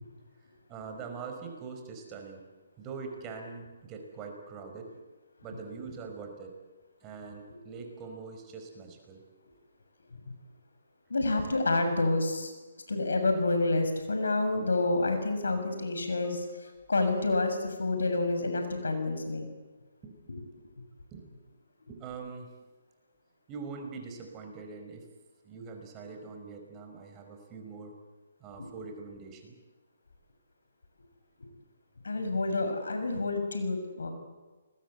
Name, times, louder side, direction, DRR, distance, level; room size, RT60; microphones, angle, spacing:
voice 1, 0.7-2.4 2.8-4.9 5.4-6.5 7.0-9.2 15.5-15.6 16.2-16.4 20.0-20.1 21.1-21.3 21.9-22.5 23.5-25.1 25.4-27.9 28.4-29.6, right 5 dB, 20° right, 4 dB, 5.1 m, -43 dB
voice 2, 11.1-12.5 12.9-19.5 32.0-34.1, left 2 dB, 85° left, 6 dB, 6.8 m, -28 dB
29.0 x 21.0 x 8.3 m, 1.3 s
hypercardioid pair, 150°, 0 cm